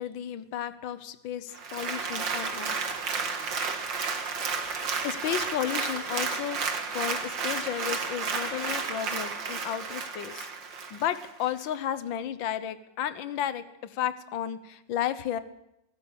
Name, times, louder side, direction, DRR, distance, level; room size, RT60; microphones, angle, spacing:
voice 1, 0.0-2.9 4.6-6.6 6.9-10.5 10.9-15.4, left 10 dB, 75° left, 12 dB, 1.7 m, -33 dB
Applause, 1.5-11.3 11.8-11.9, right 5 dB, 65° right, 2.5 m, -32 dB
25.5 x 16.5 x 6.5 m, 0.87 s
omnidirectional pair, 2.1 m